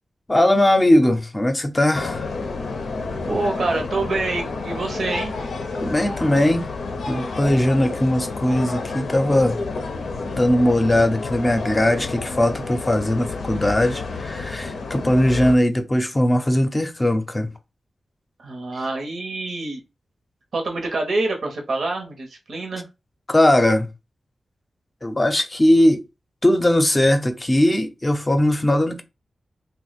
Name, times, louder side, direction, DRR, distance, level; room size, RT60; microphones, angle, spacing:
voice 1, 0.3-2.3 5.8-6.7 7.1-9.6 10.2-17.5 23.3-23.9 25.0-26.0 26.4-29.0, left 1 dB, 20° left, 0.5 m, -19 dB
sound 1, 1.9-15.6, left 3 dB, 85° left, 0.5 m, -30 dB
voice 2, 3.3-5.3 18.4-19.8 20.5-22.9, right 3 dB, 75° right, 0.8 m, -26 dB
2.8 x 2.1 x 4.0 m
wide cardioid pair, 80°, 0 cm